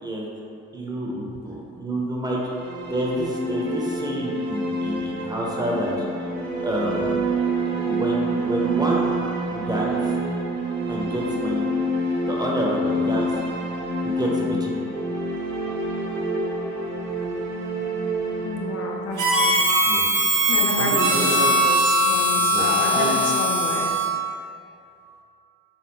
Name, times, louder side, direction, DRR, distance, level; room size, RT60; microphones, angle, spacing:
voice 1, 0.7-2.4 2.9-6.0 6.6-7.3 7.8-9.2 9.5-10.0 10.9-11.7 12.2-13.3 14.0-14.8 19.8-20.0 20.4-20.5 20.7-21.5 22.5-23.3, right 1 dB, 15° right, -4 dB, 0.6 m, -28 dB
sound 1, 2.3-20.3, right 1 dB, 60° right, 0.9 m, -27 dB
voice 2, 18.4-19.6 20.5-23.9, left 3 dB, 55° left, 0 dB, 0.5 m, -29 dB
Harmonica, 19.2-24.2, right 1 dB, 90° right, 0.8 m, -20 dB
3.4 x 3.3 x 2.9 m, 2.5 s
cardioid pair, 90°, 30 cm